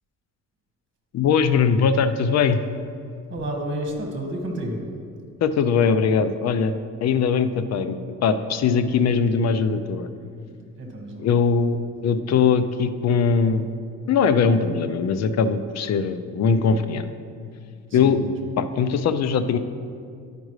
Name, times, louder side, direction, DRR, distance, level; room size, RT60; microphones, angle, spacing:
voice 1, 1.1-2.6 5.4-6.7 7.0-10.1 11.2-11.8 12.0-13.7 14.1-17.1 17.9-18.2 18.6-19.6, left 6 dB, 60° left, 11 dB, 0.5 m, -21 dB
voice 2, 3.3-4.9 10.8-11.3 17.9-18.3, right 1 dB, 40° right, 1 dB, 1.7 m, -30 dB
12.0 x 5.2 x 3.2 m, 2.3 s
cardioid pair, 90°, 30 cm